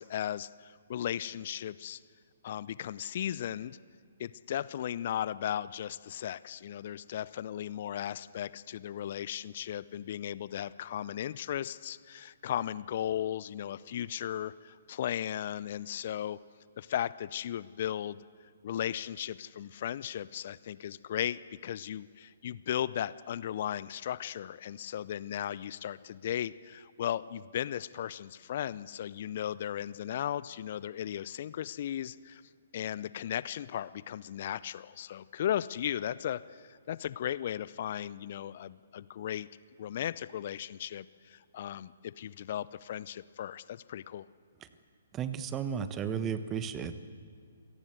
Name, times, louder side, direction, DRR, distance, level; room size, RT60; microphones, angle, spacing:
voice 1, 0.0-2.0 2.4-3.8 4.2-16.4 16.8-18.2 18.6-32.4 32.7-39.5 39.8-44.3, left 10 dB, 50° left, 18 dB, 0.6 m, -36 dB
voice 2, 45.1-47.0, right 7 dB, 20° right, 12 dB, 1.3 m, -34 dB
27.0 x 18.0 x 8.0 m, 2.1 s
figure-of-eight pair, 130°, 0 cm